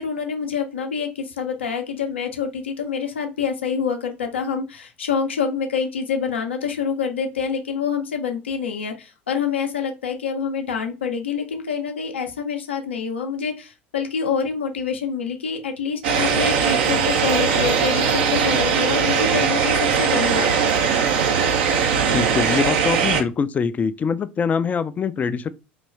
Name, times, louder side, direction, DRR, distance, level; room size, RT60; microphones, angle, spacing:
voice 1, 0.0-20.7, left 6 dB, 75° left, 0.6 m, -26 dB
sound 1, 16.0-23.2, right 6 dB, 60° right, 0.7 m, -20 dB
voice 2, 22.1-25.5, left 6 dB, 25° left, 0.4 m, -23 dB
4.0 x 3.0 x 3.2 m
figure-of-eight pair, 75°, 6 cm